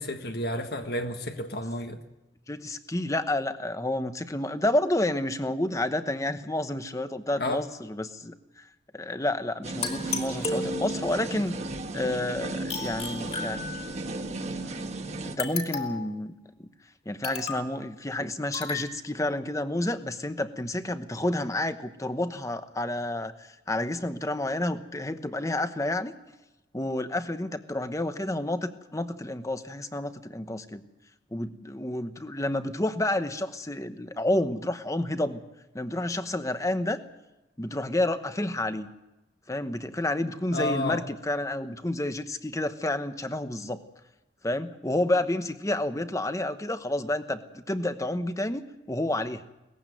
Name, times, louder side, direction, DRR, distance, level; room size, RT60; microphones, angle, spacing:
voice 1, 0.0-2.0 7.4-7.6 40.5-41.0, left 1 dB, 60° left, 5 dB, 1.5 m, -31 dB
voice 2, 2.5-8.7 8.9-11.6 11.9-13.7 14.6-14.8 15.2-16.3 16.6-16.7 17.1-26.1 26.7-30.8 31.3-35.4 35.7-37.0 37.6-38.9 39.5-43.8 44.4-49.4, left 1 dB, 15° left, 10 dB, 1.0 m, -30 dB
sound 1, 9.6-15.4, right 2 dB, 35° right, 1.3 m, -35 dB
sound 2, 9.8-11.2 12.7-14.1 15.4-16.2 17.2-17.8 18.5-18.9, left 3 dB, 35° left, 3.0 m, -34 dB
19.5 x 15.0 x 9.3 m, 0.98 s
head